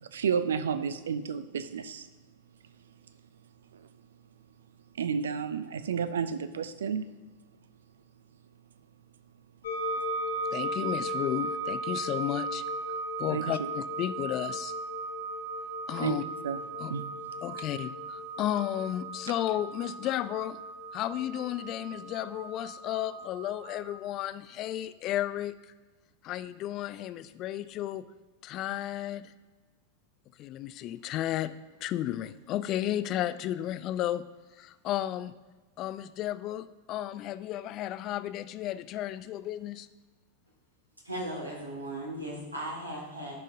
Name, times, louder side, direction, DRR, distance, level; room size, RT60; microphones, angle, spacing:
voice 1, 0.0-2.1 5.0-7.0 13.3-13.7 16.0-16.2 16.4-16.6 16.9-17.1, right 6 dB, 65° right, 12 dB, 0.4 m, -31 dB
sound 1, 9.6-23.9, right 2 dB, 60° left, 1.1 m, -36 dB
voice 2, 10.5-12.6 13.2-14.7 15.9-16.2 16.8-16.9 17.4-20.6 20.9-25.5 26.2-28.0 28.4-29.3 30.4-31.5 31.8-34.2 34.6-35.3 35.8-39.9, left 12 dB, 35° left, 14 dB, 0.3 m, -33 dB
voice 3, 41.1-43.3, right 1 dB, 85° right, -3 dB, 1.9 m, -37 dB
11.0 x 5.3 x 2.6 m, 1.2 s
figure-of-eight pair, 90°, 0 cm